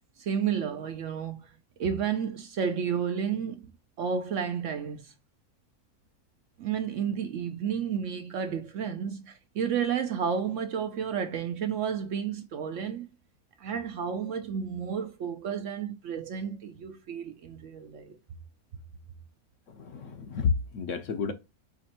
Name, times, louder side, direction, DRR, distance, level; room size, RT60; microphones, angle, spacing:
voice 1, 0.2-1.5 1.8-3.7 4.0-5.1 6.6-13.1 13.6-18.2, right 7 dB, 65° right, 0.8 m, -31 dB
voice 2, 19.7-21.3, left 5 dB, 60° left, 1.0 m, -30 dB
5.0 x 3.1 x 2.9 m
omnidirectional pair, 1.6 m